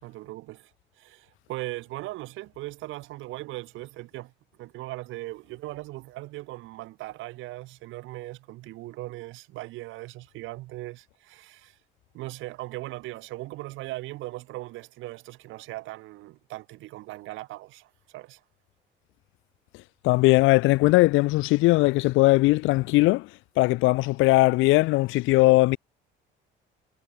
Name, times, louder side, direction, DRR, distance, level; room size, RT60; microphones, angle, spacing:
voice 1, 0.0-4.3 4.6-11.8 12.1-18.4, right 18 dB, 80° right, 2.5 m, -39 dB
voice 2, 20.0-23.3 23.6-25.8, left 21 dB, 85° left, 0.8 m, -19 dB
cardioid pair, 140°, 20 cm